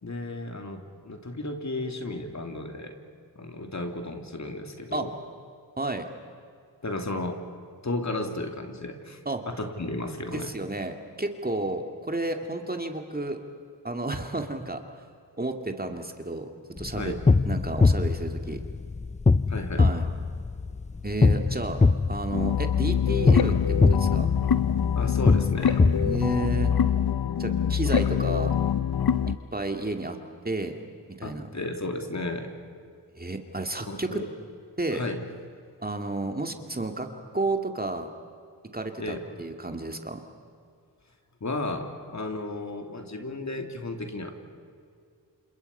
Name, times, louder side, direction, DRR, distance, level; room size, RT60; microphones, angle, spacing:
voice 1, 0.0-3.0 3.3-5.2 6.8-7.4 7.8-9.2 9.5-10.5 16.9-17.2 19.5-19.9 24.9-25.9 31.2-32.5 33.9-34.3 34.9-35.2 39.0-39.2 41.4-44.3, left 2 dB, 40° left, 4 dB, 3.2 m, -33 dB
voice 2, 5.8-6.1 9.3-9.4 10.3-13.4 13.8-14.8 15.4-16.5 16.8-17.1 17.5-18.6 19.8-20.1 21.0-21.8 22.1-24.3 26.0-26.7 27.4-28.5 29.3-30.2 30.4-30.7 31.1-31.4 33.2-34.2 34.8-35.0 35.8-37.1 37.3-38.1 38.7-40.2, right 2 dB, 20° right, 5 dB, 2.3 m, -31 dB
sound 1, 16.8-26.7, left 3 dB, 15° left, 0.7 m, -23 dB
sound 2, 22.3-29.4, left 8 dB, 60° left, 1.0 m, -25 dB
29.5 x 27.0 x 5.6 m, 2.3 s
cardioid pair, 60°, 42 cm